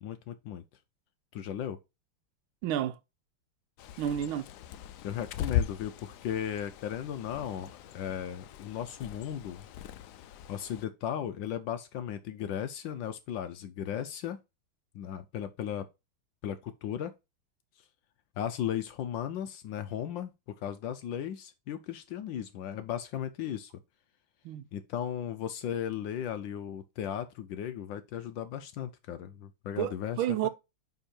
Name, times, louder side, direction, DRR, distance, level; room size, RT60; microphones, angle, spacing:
voice 1, 0.0-0.6 1.3-1.8 5.0-9.7 10.5-14.4 14.9-15.9 16.4-17.1 18.4-20.3 20.6-23.7 24.7-30.2, left 9 dB, 70° left, 1.2 m, -36 dB
voice 2, 2.6-3.0 4.0-4.5 24.4-24.6 29.8-30.5, right 11 dB, 75° right, 1.4 m, -30 dB
Bird, 3.8-10.8, left 10 dB, 85° left, 0.8 m, -39 dB
9.4 x 3.6 x 4.4 m
omnidirectional pair, 2.4 m